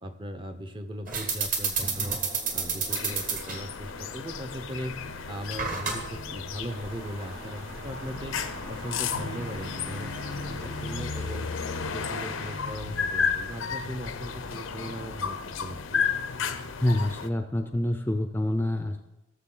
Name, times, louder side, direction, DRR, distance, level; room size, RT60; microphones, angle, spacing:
voice 1, 0.0-2.2 2.5-5.0 5.3-8.4 8.7-11.5 11.9-16.0, equal, 25° right, 6 dB, 0.7 m, -38 dB
sound 1, 1.1-11.1, right 5 dB, 40° right, 1.5 m, -34 dB
sound 2, 2.9-17.3, left 6 dB, 80° left, 0.6 m, -33 dB
sound 3, 6.7-12.7, right 1 dB, 70° right, 1.8 m, -44 dB
voice 2, 16.8-19.1, left 1 dB, 10° left, 6 dB, 0.5 m, -27 dB
18.0 x 6.8 x 3.8 m, 0.98 s
head